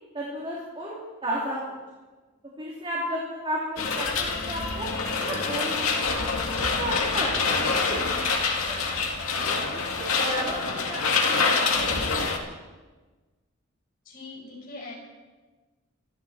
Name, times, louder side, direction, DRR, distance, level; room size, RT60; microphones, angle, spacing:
voice 1, 0.1-0.9 1.2-1.8 2.6-4.9 5.2-6.2 6.6-8.1 8.6-8.9 9.5-12.1, right 1 dB, 25° right, -5 dB, 3.2 m, -34 dB
sound 1, 3.8-12.4, left 4 dB, 75° left, 2.1 m, -26 dB
voice 2, 7.9-8.6 14.1-14.9, left 3 dB, 40° left, -2 dB, 5.3 m, -41 dB
26.0 x 12.5 x 4.4 m, 1.3 s
head